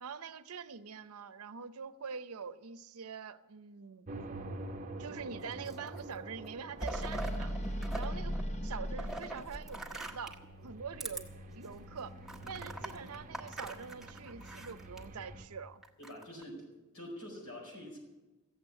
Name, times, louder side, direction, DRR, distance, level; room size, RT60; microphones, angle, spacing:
voice 1, 0.0-4.1 5.0-7.6 7.9-8.4 8.6-12.2 12.5-15.8, right 6 dB, 75° right, 0.7 m, -45 dB
sound 1, 4.1-15.5, right 1 dB, 35° right, 0.9 m, -48 dB
sound 2, 5.4-6.1 6.4-8.1 8.3-10.5 11.0-11.2 11.7-11.8 12.3-15.0 15.8-16.4, right 2 dB, ahead, 1.3 m, -43 dB
sound 3, 6.7-10.0, equal, 30° left, 0.7 m, -38 dB
voice 2, 16.0-16.6 16.9-18.0, equal, 70° left, 4.8 m, -45 dB
15.5 x 8.2 x 9.5 m
head